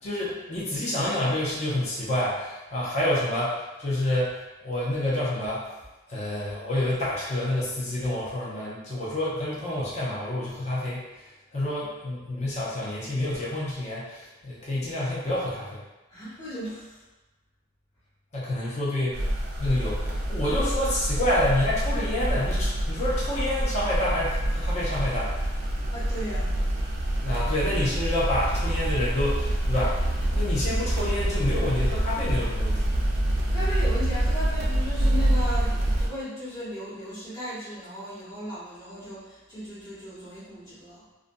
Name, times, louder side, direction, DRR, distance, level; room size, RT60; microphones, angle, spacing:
voice 1, 0.0-5.6 6.1-11.1 11.5-15.8 18.3-19.2 19.6-25.3 27.2-33.0, left 1 dB, 30° left, -7 dB, 0.6 m, -28 dB
voice 2, 16.1-17.0 25.9-26.5 33.5-41.1, equal, 15° left, -12 dB, 1.0 m, -36 dB
sound 1, 19.1-36.1, right 1 dB, 50° right, 0.4 m, -26 dB
2.5 x 2.2 x 2.5 m, 1.1 s
head